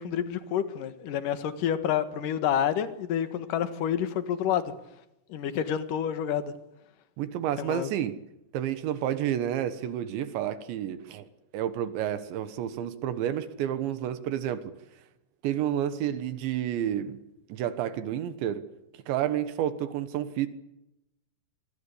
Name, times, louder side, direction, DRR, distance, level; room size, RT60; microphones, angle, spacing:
voice 1, 0.0-4.7 5.3-6.5 7.6-7.9, left 9 dB, 60° left, 10 dB, 2.4 m, -28 dB
voice 2, 7.2-8.2 8.5-11.3 11.5-14.6 15.4-17.2 17.5-18.6 19.1-20.5, right 10 dB, 70° right, 12 dB, 3.4 m, -30 dB
26.5 x 21.5 x 8.5 m, 0.88 s
omnidirectional pair, 5.7 m